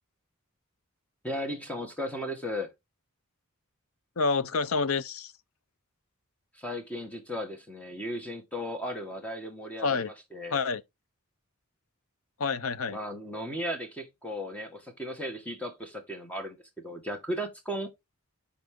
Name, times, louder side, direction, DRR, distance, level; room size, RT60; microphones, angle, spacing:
voice 1, 1.2-2.7 6.5-10.6 12.9-17.9, equal, 5° left, 1.6 m, -36 dB
voice 2, 4.2-5.3 9.8-10.1 10.5-10.8 12.4-13.0, left 4 dB, 75° left, 0.7 m, -28 dB
10.5 x 4.1 x 3.8 m
head